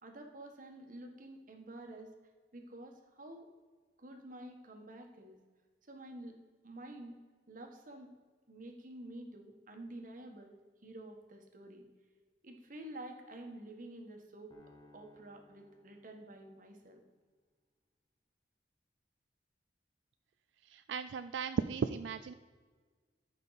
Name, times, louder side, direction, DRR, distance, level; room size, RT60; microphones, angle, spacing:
voice 1, 0.0-2.1 2.5-3.5 4.0-5.4 5.9-6.4 6.6-7.2 7.5-8.1 8.5-10.5 10.8-11.8 12.4-14.5 14.9-17.0, right 1 dB, 50° right, 3 dB, 1.4 m, -49 dB
sound 1, 14.5-16.9, left 2 dB, 25° left, 1.4 m, -63 dB
voice 2, 20.6-22.3, right 5 dB, 85° right, 9 dB, 0.4 m, -36 dB
14.0 x 5.5 x 4.0 m, 1.4 s
head